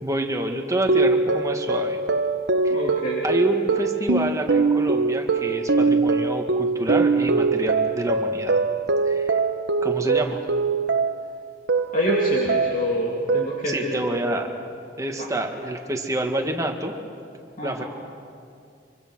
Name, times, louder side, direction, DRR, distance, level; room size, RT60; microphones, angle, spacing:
voice 1, 0.0-2.0 2.6-2.9 3.2-8.6 9.0-9.4 9.8-10.4 13.7-14.5 15.0-16.9 17.6-17.8, right 1 dB, 20° right, 3 dB, 1.9 m, -27 dB
sound 1, 0.9-11.3 11.7-12.9 13.3-13.8, right 4 dB, 65° right, 0.9 m, -22 dB
voice 2, 2.7-3.2 11.9-14.2 15.2-15.3 17.6-17.8, left 1 dB, 50° left, -3 dB, 2.6 m, -26 dB
25.0 x 24.5 x 6.3 m, 2.3 s
head